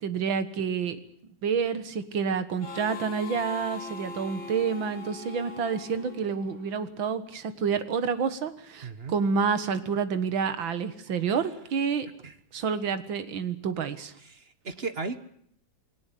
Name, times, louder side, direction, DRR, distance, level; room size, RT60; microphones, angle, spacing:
voice 1, 0.0-1.0 1.4-12.1 12.5-14.1, right 6 dB, 75° right, 12 dB, 2.3 m, -29 dB
Harmonica, 2.6-7.1, left 3 dB, 90° left, 3.9 m, -41 dB
voice 2, 8.8-9.1 12.2-12.3 14.2-15.2, right 4 dB, 35° right, 11 dB, 1.2 m, -35 dB
21.5 x 18.0 x 9.9 m, 0.67 s
omnidirectional pair, 2.1 m